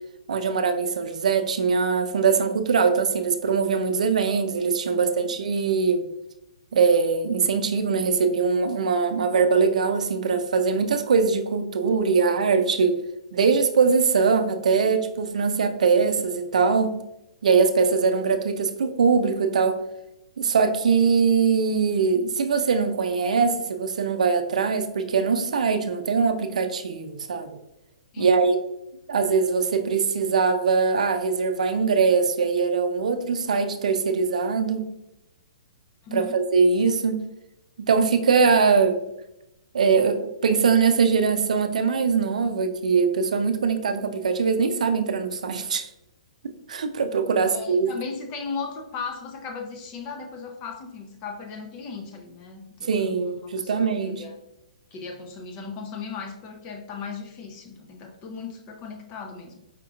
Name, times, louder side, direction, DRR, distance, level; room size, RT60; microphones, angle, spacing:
voice 1, 0.3-6.0 6.7-13.0 13.3-17.0 17.4-19.8 20.4-27.6 28.2-28.6 29.1-34.9 36.1-37.2 37.8-39.0 39.7-45.9 46.7-47.9 52.8-54.2, right 5 dB, 80° right, 8 dB, 0.4 m, -22 dB
voice 2, 36.0-36.4 47.4-54.4 54.9-59.6, left 5 dB, 30° left, 4 dB, 0.6 m, -37 dB
5.0 x 2.9 x 2.3 m, 0.87 s
hypercardioid pair, 150°, 4 cm